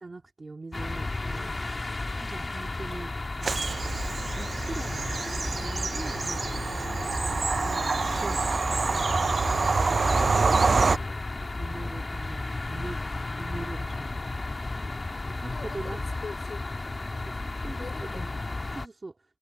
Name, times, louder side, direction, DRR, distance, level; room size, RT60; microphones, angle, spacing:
voice 1, 0.0-1.6 2.2-3.1 3.4-4.0 4.4-5.1 5.6-6.8 7.2-9.4 10.3-10.6 11.4-13.0 13.4-14.2 15.4-16.0 17.2-18.3 18.7-19.2, right 3 dB, 40° right, 2.5 m, -42 dB
sound 1, 0.7-18.9, left 2 dB, 40° left, 2.6 m, -33 dB
sound 2, 1.4-3.0 5.6-7.6 9.6-11.7 13.9-16.0, right 6 dB, 80° right, 4.4 m, -60 dB
Bird vocalization bird call bird song / Train, 3.4-11.0, right 4 dB, 60° right, 0.4 m, -26 dB
voice 2, 10.2-11.2 15.5-17.1 17.7-18.4, left 4 dB, 65° left, 3.8 m, -45 dB
cardioid pair, 60°, 0 cm